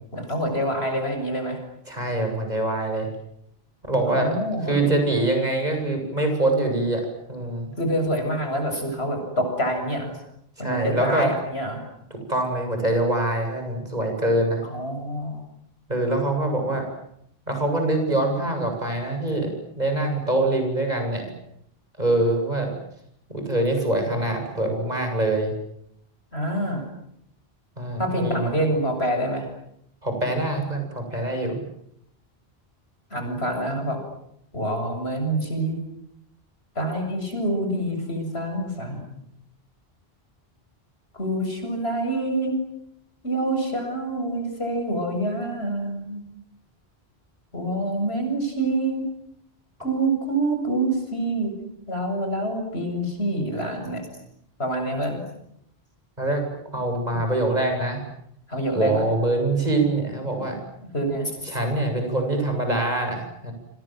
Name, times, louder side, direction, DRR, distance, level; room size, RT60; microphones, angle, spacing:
voice 1, 0.1-1.6 4.0-5.0 7.8-10.2 10.6-11.8 14.6-15.4 26.3-26.8 28.0-29.5 33.1-34.0 34.5-35.8 36.8-39.2 41.1-42.5 43.2-46.2 47.5-49.1 49.8-51.5 51.9-54.0 54.6-55.2 57.1-57.2 58.5-59.1 60.9-61.4, right 1 dB, 85° left, 5 dB, 7.7 m, -26 dB
voice 2, 1.9-3.1 3.9-4.3 4.7-7.7 10.6-11.3 12.3-14.6 15.9-16.8 17.5-21.3 22.0-22.7 23.3-25.5 27.8-28.6 30.0-31.6 56.2-56.4 56.7-58.0 58.7-60.6 61.5-63.5, right 2 dB, 40° right, 4 dB, 7.9 m, -24 dB
28.5 x 27.0 x 7.8 m, 0.74 s
omnidirectional pair, 1.0 m